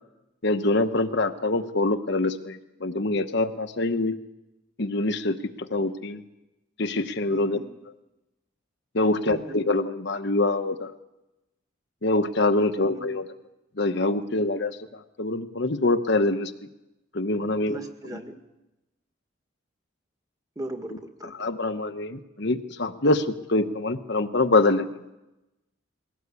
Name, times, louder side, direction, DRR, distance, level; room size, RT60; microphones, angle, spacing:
voice 1, 0.4-4.2 4.8-6.2 6.8-7.6 8.9-10.9 12.0-13.2 13.8-16.5 17.1-17.8 21.2-25.0, left 2 dB, 55° left, 8 dB, 1.0 m, -25 dB
voice 2, 7.3-7.6 9.3-9.6 12.8-13.1 17.7-18.4 20.6-21.5, right 2 dB, 15° right, 5 dB, 1.7 m, -38 dB
21.5 x 17.5 x 8.4 m, 0.96 s
head